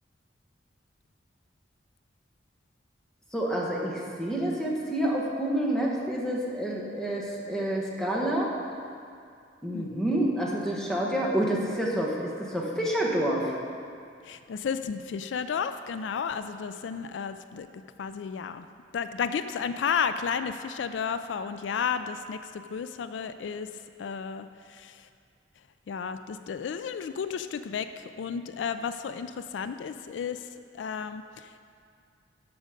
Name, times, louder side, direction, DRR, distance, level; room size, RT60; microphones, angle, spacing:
voice 1, 3.3-8.5 9.6-13.5, right 1 dB, 5° left, -3 dB, 1.3 m, -28 dB
voice 2, 9.7-10.0 14.2-17.7 18.0-18.7 18.9-23.7 24.0-25.1 25.9-30.5 30.7-31.5, left 6 dB, 85° left, 10 dB, 0.4 m, -32 dB
13.0 x 5.1 x 5.1 m, 2.3 s
head